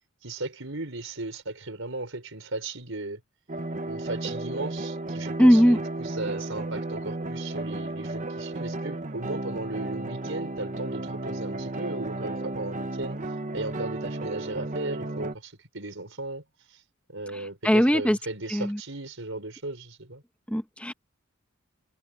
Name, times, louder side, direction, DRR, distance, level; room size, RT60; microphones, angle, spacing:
voice 1, 0.2-3.2 3.9-13.2 13.5-16.4 16.7-16.8 17.1-20.2, right 2 dB, 65° right, 5.6 m, -36 dB
sound 1, 3.5-15.3, right 2 dB, 35° right, 1.2 m, -33 dB
voice 2, 5.4-5.8 17.6-18.2 18.5-18.8 20.5-20.9, equal, 5° left, 1.4 m, -19 dB
head